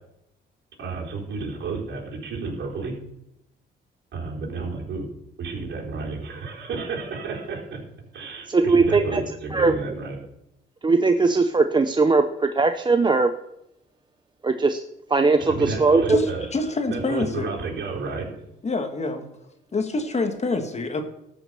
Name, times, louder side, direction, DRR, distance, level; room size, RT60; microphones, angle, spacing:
voice 1, 0.8-2.9 4.1-5.1 5.4-7.8 8.1-10.1 15.5-16.4 16.9-18.3, right 4 dB, 65° right, -2 dB, 4.2 m, -31 dB
voice 2, 8.5-9.2 9.5-9.7 10.8-13.3 14.4-14.8 15.1-16.2, right 3 dB, 25° right, 8 dB, 0.7 m, -19 dB
voice 3, 16.5-17.5 18.6-19.3 19.7-21.0, left 3 dB, 35° left, 6 dB, 1.7 m, -26 dB
13.5 x 6.2 x 6.7 m, 0.82 s
cardioid pair, 90°, 20 cm